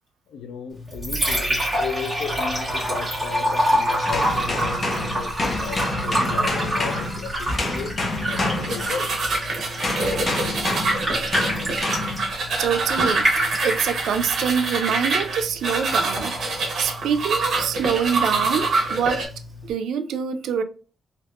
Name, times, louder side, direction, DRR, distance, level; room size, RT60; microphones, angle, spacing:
voice 1, 0.3-7.9 8.3-9.1, left 6 dB, 75° left, 0.5 m, -35 dB
Liquid, 0.7-19.7, equal, 5° right, 1.2 m, -28 dB
sound 1, 4.1-9.3 9.8-12.3 13.0-13.3, left 2 dB, 30° left, 0.6 m, -28 dB
sound 2, 8.3-19.2, right 3 dB, 50° right, 1.0 m, -26 dB
voice 2, 12.6-16.4 16.8-19.2 19.6-20.6, right 7 dB, 85° right, 0.3 m, -25 dB
3.4 x 2.8 x 2.4 m
wide cardioid pair, 175°, 0 cm